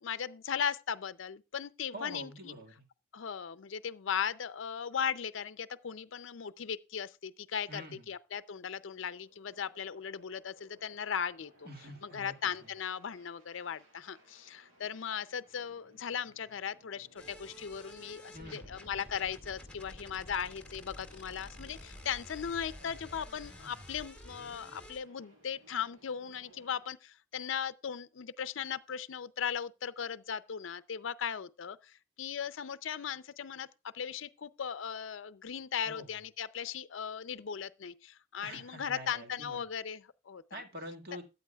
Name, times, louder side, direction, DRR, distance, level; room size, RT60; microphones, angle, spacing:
voice 1, 0.0-2.5 3.1-11.7 12.0-33.7 33.9-40.6, left 7 dB, 70° left, 0.5 m, -38 dB
voice 2, 1.9-2.8 7.7-8.1 11.7-12.5 18.3-18.7 35.9-36.1 38.4-39.6 40.5-41.2, right 1 dB, 50° right, 1.9 m, -46 dB
sound 1, 8.5-26.8, right 1 dB, 90° right, 5.8 m, -63 dB
sound 2, 17.2-25.0, left 1 dB, 5° left, 2.0 m, -50 dB
14.0 x 9.3 x 2.3 m
head